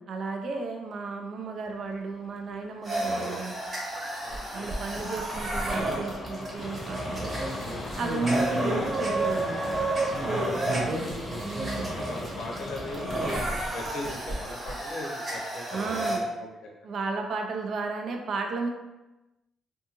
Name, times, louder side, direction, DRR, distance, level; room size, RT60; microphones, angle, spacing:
voice 1, 0.0-3.5 4.5-7.3 8.0-9.9 11.4-12.0 15.7-16.2 16.8-18.7, right 3 dB, 60° right, 3 dB, 0.4 m, -33 dB
sound 1, 1.5-10.9, left 3 dB, 55° left, 0.3 m, -45 dB
sound 2, 2.8-16.2, right 1 dB, 35° right, 0.9 m, -31 dB
voice 2, 4.2-4.7 10.7-11.3 11.9-15.8 16.0-16.7, left 2 dB, 80° left, -2 dB, 0.7 m, -39 dB
sound 3, 6.5-13.4, left 1 dB, 20° left, 0.6 m, -40 dB
2.6 x 2.3 x 2.9 m, 1.0 s
cardioid pair, 90°, 0 cm